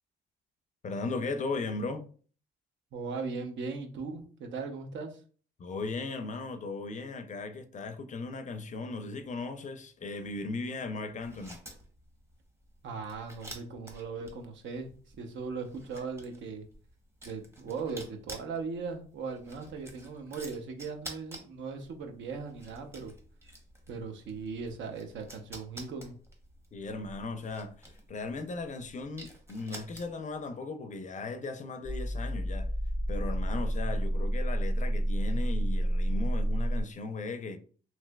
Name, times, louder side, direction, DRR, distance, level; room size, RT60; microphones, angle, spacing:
voice 1, 0.8-2.0 5.6-11.6 26.7-27.8 28.1-32.7 33.1-37.6, left 3 dB, 40° left, 0.4 m, -37 dB
voice 2, 2.9-5.2 12.8-16.7 17.2-23.1 23.9-26.1, right 4 dB, 70° right, 0.7 m, -38 dB
sound 1, 11.2-30.4, right 1 dB, 15° right, 0.8 m, -50 dB
sound 2, 31.8-36.8, equal, 30° right, 1.2 m, -29 dB
3.1 x 2.8 x 2.2 m
cardioid pair, 90°, 20 cm